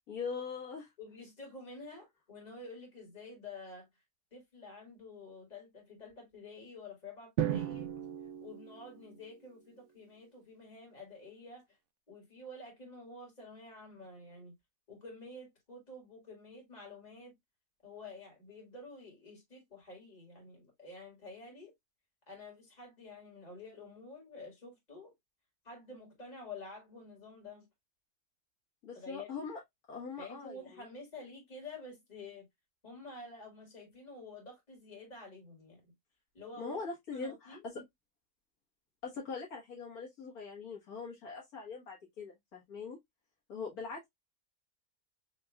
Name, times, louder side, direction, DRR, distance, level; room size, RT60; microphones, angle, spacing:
voice 1, 0.1-0.9 28.8-29.6 29.9-30.6 36.6-37.7 39.0-43.0 43.5-44.1, left 5 dB, 70° left, 1.8 m, -42 dB
voice 2, 1.0-3.9 4.3-7.9 8.4-11.6 12.1-14.5 14.9-17.4 17.8-21.7 22.3-25.1 25.6-27.7 28.9-29.5 30.2-32.5 32.8-35.9 36.3-36.8 37.1-37.8, left 3 dB, 25° left, 2.1 m, -49 dB
Drum, 7.4-9.5, right 11 dB, 65° right, 0.7 m, -36 dB
5.1 x 3.0 x 2.2 m
omnidirectional pair, 1.7 m